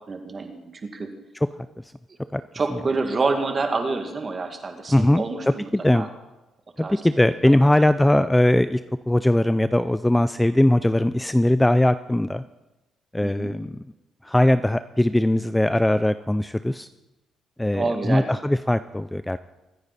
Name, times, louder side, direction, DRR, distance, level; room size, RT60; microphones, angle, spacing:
voice 1, 0.1-1.1 2.5-5.7 5.9-6.1 6.8-7.7 13.2-13.5 17.7-18.3, right 3 dB, 35° right, 5 dB, 2.2 m, -28 dB
voice 2, 4.9-5.2 5.7-6.1 6.8-8.8 9.1-12.4 13.1-13.8 14.2-16.9 17.6-19.4, left 1 dB, 10° left, 13 dB, 0.4 m, -20 dB
23.5 x 9.6 x 4.2 m, 1.0 s
cardioid pair, 90°, 0 cm